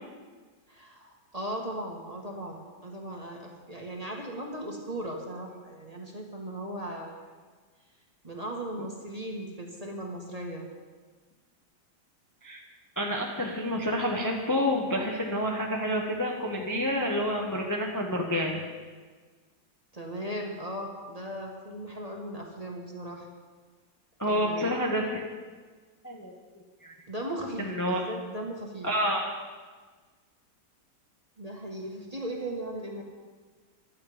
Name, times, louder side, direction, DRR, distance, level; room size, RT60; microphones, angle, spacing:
voice 1, 0.7-7.3 8.2-10.6 19.9-23.3 24.3-24.7 27.1-28.9 31.4-33.0, right 1 dB, 20° right, 0 dB, 1.7 m, -37 dB
voice 2, 13.0-18.6 24.2-25.2 26.0-26.3 26.8-26.9 27.6-28.1 28.8-29.2, equal, 10° left, -1 dB, 1.2 m, -28 dB
15.0 x 12.0 x 5.1 m, 1.4 s
omnidirectional pair, 2.0 m